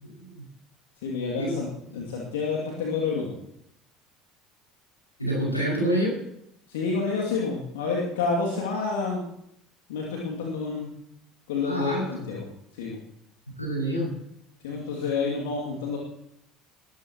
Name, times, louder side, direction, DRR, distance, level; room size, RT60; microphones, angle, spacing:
voice 1, 1.0-3.3 6.7-9.2 9.9-10.9 11.5-12.4 12.7-13.0 14.6-16.0, left 4 dB, 65° left, -1 dB, 2.6 m, -29 dB
voice 2, 5.2-6.1 11.6-12.2 13.6-14.1, right 1 dB, 85° left, -3 dB, 6.2 m, -27 dB
21.5 x 13.5 x 3.1 m, 0.74 s
figure-of-eight pair, 65°, 0 cm